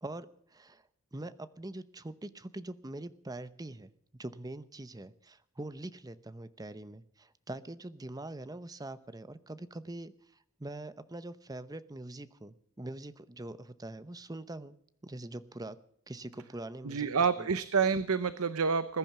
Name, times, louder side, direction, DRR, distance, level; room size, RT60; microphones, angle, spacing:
voice 1, 0.0-10.1 10.6-14.8 15.0-15.8 16.1-17.1 17.4-17.5, right 2 dB, 15° right, 14 dB, 0.8 m, -43 dB
voice 2, 16.8-19.0, right 5 dB, 70° right, 13 dB, 0.7 m, -28 dB
21.0 x 10.5 x 6.0 m, 0.68 s
head